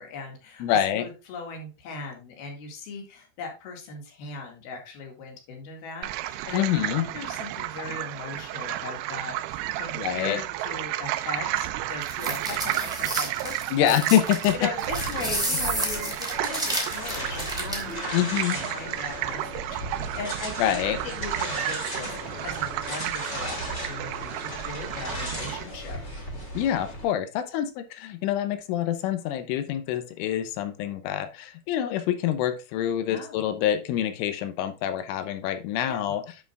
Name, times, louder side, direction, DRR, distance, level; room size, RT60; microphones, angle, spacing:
voice 1, 0.0-13.5 13.8-14.0 14.5-26.0 33.1-33.4 35.9-36.2, left 4 dB, 60° left, 2 dB, 3.5 m, -39 dB
voice 2, 0.6-1.1 6.5-7.1 10.0-10.4 13.7-14.6 18.1-18.6 20.6-21.0 26.6-36.2, left 11 dB, 90° left, 9 dB, 3.4 m, -26 dB
sound 1, 6.0-25.6, right 15 dB, 85° right, 3.0 m, -32 dB
sound 2, 12.0-17.9, right 1 dB, 5° right, 0.8 m, -31 dB
sound 3, 14.8-27.0, equal, 30° left, 1.3 m, -36 dB
11.0 x 6.4 x 2.4 m, 0.30 s
omnidirectional pair, 5.6 m